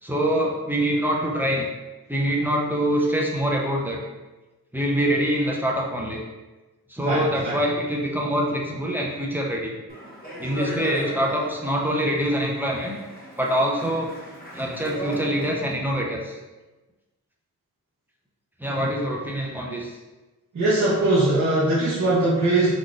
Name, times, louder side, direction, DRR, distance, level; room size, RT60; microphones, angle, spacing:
voice 1, 0.0-1.7 2.1-4.0 4.7-6.3 6.9-9.7 10.4-13.0 13.4-14.1 14.5-16.4 18.6-19.9, equal, 5° right, -2 dB, 0.6 m, -24 dB
voice 2, 7.0-7.6 20.5-22.7, right 2 dB, 50° right, -9 dB, 0.9 m, -21 dB
Speech, 9.9-15.7, equal, 25° left, 1.1 m, -37 dB
3.9 x 2.4 x 2.4 m, 1.1 s
cardioid pair, 65°, 36 cm